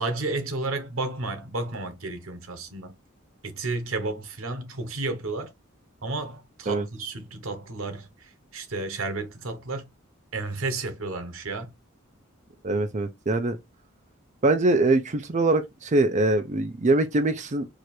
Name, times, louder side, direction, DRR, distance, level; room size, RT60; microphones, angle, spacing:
voice 1, 0.0-2.9 3.4-5.5 6.0-9.8 10.3-11.7, right 3 dB, 90° right, 1.2 m, -32 dB
voice 2, 12.6-13.6 14.4-17.7, right 2 dB, 35° right, 0.6 m, -23 dB
4.8 x 2.5 x 4.3 m
head